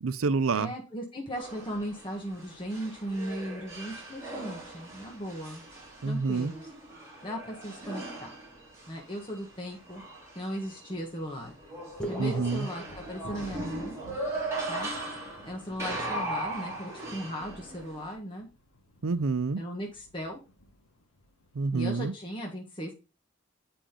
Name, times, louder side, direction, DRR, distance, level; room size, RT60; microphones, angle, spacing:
voice 1, 0.0-0.7 6.0-6.5 12.2-12.7 19.0-19.6 21.5-22.1, right 4 dB, 80° right, 0.6 m, -28 dB
voice 2, 0.5-5.6 6.0-6.7 7.2-8.3 8.9-10.0 10.3-11.5 12.1-14.0 14.7-14.9 15.4-18.5 19.6-20.4 21.7-22.9, equal, 25° left, 1.5 m, -37 dB
sound 1, 1.4-18.1, right 2 dB, 15° right, 3.1 m, -39 dB
sound 2, 11.4-22.0, left 1 dB, 85° left, 1.3 m, -51 dB
sound 3, 12.0-13.9, right 1 dB, 5° left, 1.7 m, -40 dB
8.6 x 5.1 x 3.7 m
head